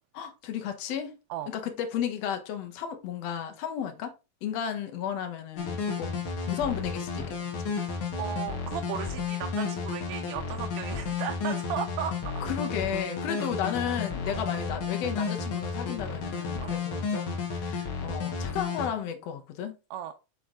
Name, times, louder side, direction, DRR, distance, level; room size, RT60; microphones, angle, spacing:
voice 1, 0.1-1.1 1.5-4.1 4.4-6.2 6.5-7.4 7.6-7.7 12.4-19.8, left 8 dB, 70° left, 1.6 m, -33 dB
sound 1, 5.6-18.9, left 5 dB, 50° left, 1.6 m, -32 dB
voice 2, 8.2-12.3 16.6-16.8 19.9-20.1, right 10 dB, 90° right, 2.4 m, -35 dB
7.2 x 4.6 x 3.7 m
omnidirectional pair, 4.0 m